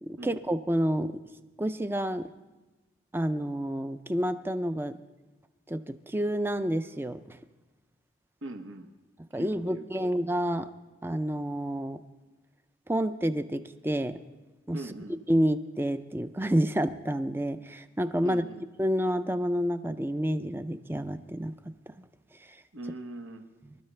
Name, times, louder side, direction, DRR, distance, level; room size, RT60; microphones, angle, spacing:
voice 1, 0.0-1.2 1.6-2.3 3.1-5.0 5.7-7.4 9.3-10.7 11.0-12.0 12.9-14.2 14.7-14.8 15.3-18.4 18.8-21.5 22.5-22.6 23.6-23.8, equal, 10° right, 11 dB, 0.4 m, -29 dB
voice 2, 8.4-8.9 9.3-10.1 14.7-15.2 18.2-18.7 22.7-23.4, right 2 dB, 80° right, 5 dB, 1.0 m, -41 dB
25.5 x 12.5 x 3.3 m, 1.2 s
head